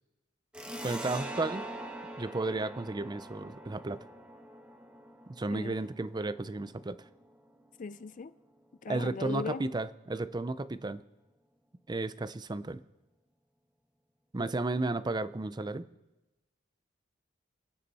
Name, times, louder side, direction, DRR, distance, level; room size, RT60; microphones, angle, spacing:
sound 1, 0.5-7.7, right 1 dB, 5° right, 1.4 m, -44 dB
voice 1, 0.8-1.6 2.2-4.0 5.3-7.0 8.9-11.0 11.9-12.8 14.3-15.9, right 2 dB, 20° right, 0.5 m, -33 dB
voice 2, 7.8-8.3 8.8-9.6, left 5 dB, 40° left, 0.4 m, -38 dB
28.0 x 9.7 x 4.2 m
head